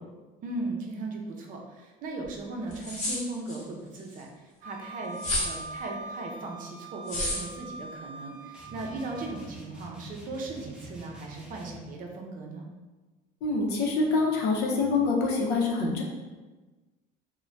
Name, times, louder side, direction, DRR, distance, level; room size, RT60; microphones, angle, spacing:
voice 1, 0.4-5.2 5.4-12.7, right 2 dB, 50° right, 0 dB, 0.5 m, -37 dB
sound 1, 2.2-2.3 2.7-3.6 5.2-5.6 7.1-7.4, left 1 dB, 45° left, 0.9 m, -30 dB
Wind instrument woodwind instrument, 4.6-9.3, right 3 dB, 90° right, 0.6 m, -43 dB
sound 2, 8.5-11.9, right 1 dB, 5° right, 0.6 m, -46 dB
voice 2, 13.4-16.0, left 3 dB, 80° left, -1 dB, 0.6 m, -25 dB
2.5 x 2.1 x 3.2 m, 1.2 s
cardioid pair, 125°, 18 cm